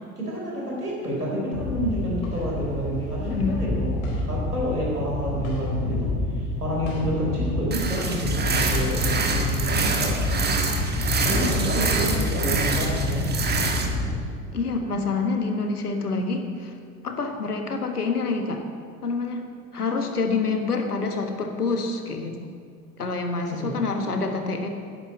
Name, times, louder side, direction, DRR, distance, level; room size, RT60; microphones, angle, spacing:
voice 1, 0.2-4.0 4.3-10.2 11.2-13.2 23.5-23.8, equal, 90° right, -3 dB, 3.8 m, -29 dB
sound 1, 1.5-14.1, left 2 dB, 55° left, 4.3 m, -28 dB
voice 2, 3.3-3.6 11.4-11.6 14.5-16.7 17.0-18.6 19.0-19.4 19.7-22.5 23.0-24.7, left 4 dB, 85° left, 5 dB, 1.5 m, -27 dB
sound 2, 7.7-13.9, right 4 dB, 20° right, 1.5 m, -26 dB
11.0 x 9.9 x 7.4 m, 2.1 s
figure-of-eight pair, 75°, 45 cm